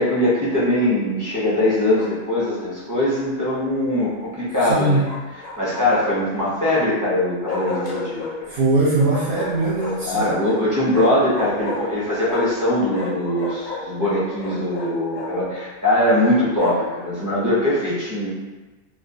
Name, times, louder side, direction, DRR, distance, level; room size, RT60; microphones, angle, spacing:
voice 1, 0.0-5.0 5.6-8.5 10.0-18.3, left 1 dB, 25° right, -9 dB, 0.5 m, -21 dB
Bark, 1.9-2.6 5.0-6.1 7.5-8.4 9.1-10.2 10.9-12.6 12.9-15.3 16.0-16.9, left 3 dB, 55° left, 0.5 m, -32 dB
voice 2, 4.7-5.0 8.5-10.3, right 2 dB, 60° right, -8 dB, 0.7 m, -20 dB
2.2 x 2.1 x 2.6 m, 1.2 s
omnidirectional pair, 1.2 m